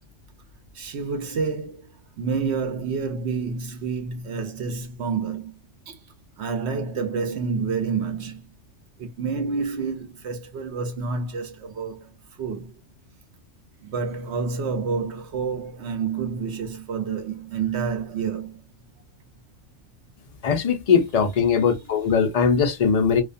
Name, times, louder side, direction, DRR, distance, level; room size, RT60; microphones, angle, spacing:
voice 1, 0.7-1.9 2.2-5.5 5.9-6.0 6.4-8.4 9.0-12.1 12.4-12.7 13.8-18.6 21.4-22.0 22.5-22.6, right 5 dB, 65° right, 0.8 m, -29 dB
voice 2, 20.4-23.2, left 6 dB, 60° left, 0.4 m, -20 dB
2.4 x 2.2 x 2.5 m
omnidirectional pair, 1.3 m